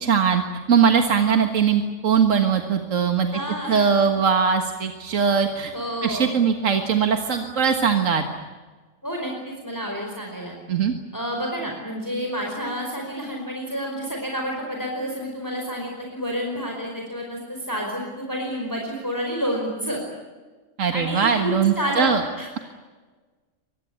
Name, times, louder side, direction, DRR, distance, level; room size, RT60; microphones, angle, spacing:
voice 1, 0.0-0.4 0.7-3.3 3.7-5.7 6.0-8.2 10.7-10.9 20.8-22.2, right 6 dB, 85° right, 5 dB, 2.0 m, -20 dB
voice 2, 3.3-4.1 5.7-6.3 9.0-10.5 11.1-20.0 20.9-22.6, equal, 15° left, 0 dB, 4.9 m, -29 dB
24.5 x 21.0 x 8.6 m, 1.4 s
omnidirectional pair, 1.3 m